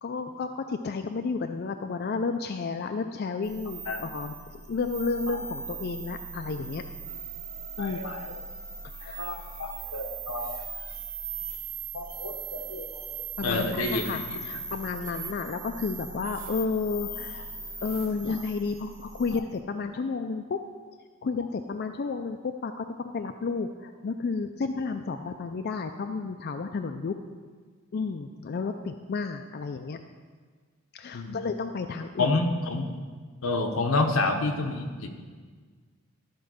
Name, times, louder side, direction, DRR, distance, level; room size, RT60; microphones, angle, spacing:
voice 1, 0.0-6.8 7.8-8.0 9.0-9.3 13.4-17.5 17.8-20.6 21.2-22.8 23.1-27.2 27.9-30.0 30.9-32.4, left 4 dB, 50° left, 7 dB, 0.4 m, -32 dB
sound 1, 3.4-19.4, right 4 dB, 35° right, 1.7 m, -39 dB
voice 2, 7.8-8.4 9.2-10.6 11.9-14.2 31.1-31.4 32.2-32.9 33.4-35.1, left 3 dB, 85° left, 5 dB, 1.0 m, -29 dB
12.0 x 4.6 x 6.3 m, 1.5 s
head